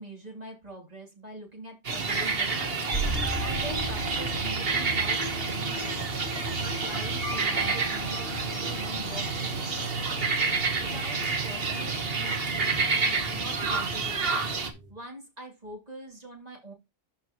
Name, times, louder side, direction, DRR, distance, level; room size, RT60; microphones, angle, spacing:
voice 1, 0.0-2.9 3.4-6.2 6.6-10.3 10.9-12.0 13.3-14.4 14.9-16.7, right 2 dB, 35° right, -2 dB, 3.3 m, -44 dB
sound 1, 1.8-14.7, right 4 dB, 60° right, 1.5 m, -29 dB
sound 2, 2.9-14.9, right 2 dB, 55° left, 2.7 m, -37 dB
13.0 x 4.5 x 3.1 m, 0.23 s
omnidirectional pair, 1.1 m